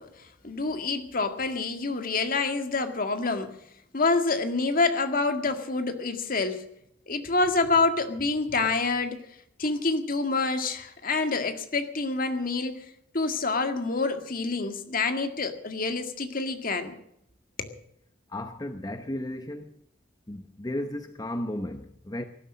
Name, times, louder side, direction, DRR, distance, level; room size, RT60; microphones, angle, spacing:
voice 1, 0.0-3.5 3.9-6.6 7.1-9.2 9.6-12.9 13.1-17.0 17.6-17.7, left 3 dB, 50° left, 1.9 m, -27 dB
voice 2, 18.3-19.7 20.3-22.2, left 1 dB, 20° left, 0.8 m, -34 dB
18.5 x 12.0 x 6.3 m
head